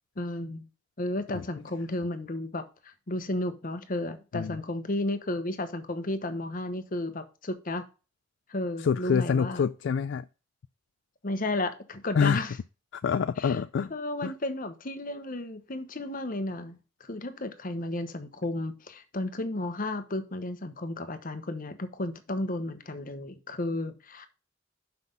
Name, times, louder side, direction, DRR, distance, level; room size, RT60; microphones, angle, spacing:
voice 1, 0.2-0.7 1.0-7.8 8.5-9.6 11.2-12.5 13.4-13.6 13.9-24.3, left 1 dB, 45° left, 1.1 m, -33 dB
voice 2, 8.8-10.3 12.1-12.4 12.9-13.9 14.2-14.3, left 6 dB, 65° left, 0.3 m, -26 dB
5.9 x 5.8 x 5.3 m
head